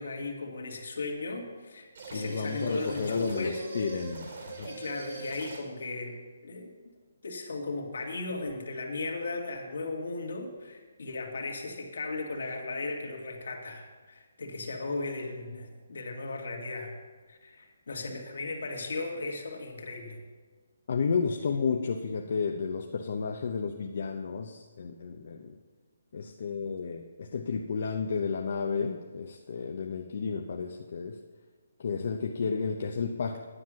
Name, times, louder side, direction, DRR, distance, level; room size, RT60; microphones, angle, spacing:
voice 1, 0.0-3.6 4.7-6.2 6.4-6.7 7.2-16.9 17.3-20.2, left 3 dB, 70° left, 2 dB, 2.0 m, -36 dB
sound 1, 1.9-5.8, right 4 dB, 50° right, 2.7 m, -42 dB
voice 2, 2.1-4.7 20.9-25.6 26.1-31.2 31.8-33.5, left 5 dB, 50° left, 3 dB, 0.7 m, -32 dB
9.9 x 7.6 x 6.3 m, 1.4 s
hypercardioid pair, 170°, 0 cm